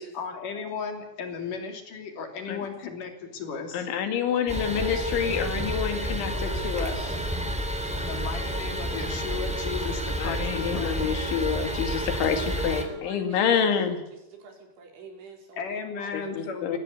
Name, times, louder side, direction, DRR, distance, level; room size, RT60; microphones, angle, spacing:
voice 1, 0.1-3.9 7.9-11.1 15.5-16.8, left 6 dB, 50° left, 5 dB, 4.1 m, -35 dB
voice 2, 3.7-6.9 10.2-14.0 16.4-16.8, left 7 dB, 80° left, 7 dB, 4.7 m, -27 dB
voice 3, 4.3-7.4 12.8-13.7 14.1-16.6, right 4 dB, 80° right, 2 dB, 6.7 m, -45 dB
sound 1, 4.5-12.8, equal, ahead, 1.9 m, -30 dB
21.0 x 17.0 x 8.3 m, 0.92 s
omnidirectional pair, 5.3 m